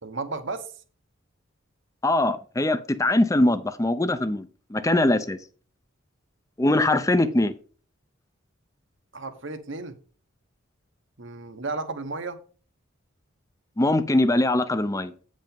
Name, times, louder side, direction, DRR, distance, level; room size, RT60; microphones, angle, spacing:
voice 1, 0.0-0.7 9.1-10.0 11.2-12.4, right 3 dB, 60° right, 1.1 m, -33 dB
voice 2, 2.0-5.4 6.6-7.5 13.8-15.1, left 1 dB, 15° left, 0.5 m, -22 dB
8.9 x 5.3 x 5.2 m
head